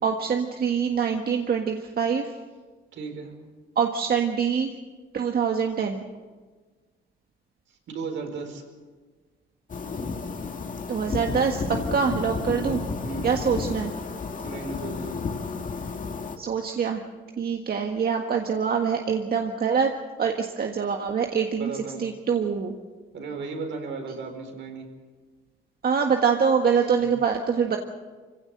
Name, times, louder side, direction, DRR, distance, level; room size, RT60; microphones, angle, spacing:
voice 1, 0.0-2.3 3.7-4.7 5.1-6.0 10.9-12.8 13.2-13.9 16.4-17.0 17.4-19.9 20.2-21.7 22.0-22.7 25.8-27.8, right 6 dB, 50° right, 4 dB, 1.6 m, -24 dB
voice 2, 2.9-3.3 7.7-8.6 11.9-12.1 12.4-12.7 13.0-13.3 14.4-15.2 21.5-22.1 23.1-24.9 27.0-27.1, right 4 dB, 70° right, 4 dB, 4.7 m, -35 dB
sound 1, 9.7-16.4, left 4 dB, 40° left, 2.0 m, -32 dB
24.5 x 16.5 x 7.9 m, 1.4 s
cardioid pair, 90°, 20 cm